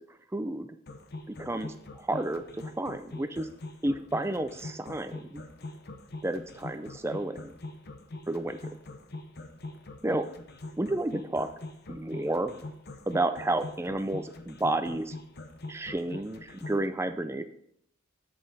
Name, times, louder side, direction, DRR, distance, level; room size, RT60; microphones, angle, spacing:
voice 1, 0.3-0.8 1.3-3.5 3.8-5.4 6.2-7.5 8.3-8.6 10.0-10.3 10.8-11.5 11.9-12.5 13.1-15.2 15.7-17.4, right 1 dB, 10° right, 9 dB, 0.4 m, -31 dB
sound 1, 0.9-16.8, left 2 dB, 50° left, 0.8 m, -43 dB
8.0 x 7.7 x 4.0 m, 0.69 s
head